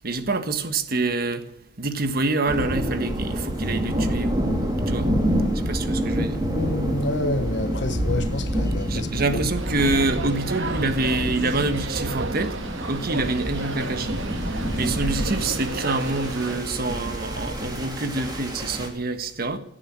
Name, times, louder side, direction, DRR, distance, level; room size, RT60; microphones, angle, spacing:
voice 1, 0.0-1.4 1.8-4.6 4.9-5.1 5.7-6.4 8.9-12.5 12.9-14.2 14.7-19.6, right 2 dB, 55° right, 1.5 m, -26 dB
sound 1, 2.5-18.9, equal, 20° right, 3.3 m, -27 dB
voice 2, 6.5-9.4, left 2 dB, 65° left, 1.1 m, -28 dB
sound 2, 9.5-16.6, right 3 dB, 85° right, 1.6 m, -33 dB
17.0 x 9.7 x 8.8 m
head